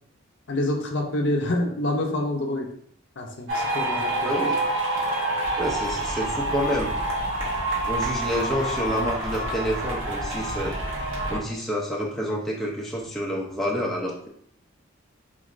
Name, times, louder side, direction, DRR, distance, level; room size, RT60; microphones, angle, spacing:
voice 1, 0.5-2.7 3.2-4.3, left 1 dB, 55° left, 2 dB, 0.5 m, -27 dB
sound 1, 3.5-11.4, right 1 dB, 75° right, 0.9 m, -27 dB
voice 2, 4.2-4.6 5.6-6.9 7.8-10.7 11.3-14.3, equal, ahead, -3 dB, 0.4 m, -28 dB
3.8 x 3.1 x 2.4 m, 0.67 s
head